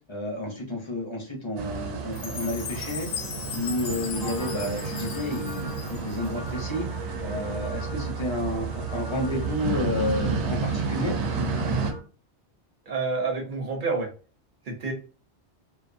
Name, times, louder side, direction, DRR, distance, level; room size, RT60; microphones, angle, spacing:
voice 1, 0.1-3.1 3.5-6.9 7.2-11.1, left 1 dB, 30° left, 0 dB, 0.7 m, -31 dB
sound 1, 1.6-11.9, right 4 dB, 85° right, 0.9 m, -31 dB
Chime, 2.1-6.3, left 6 dB, 80° left, 0.9 m, -37 dB
sound 2, 4.1-12.0, right 1 dB, 30° right, 0.5 m, -40 dB
voice 2, 12.9-14.1 14.6-14.9, right 4 dB, 50° right, 2 dB, 0.9 m, -28 dB
2.5 x 2.3 x 2.5 m, 0.36 s
omnidirectional pair, 1.2 m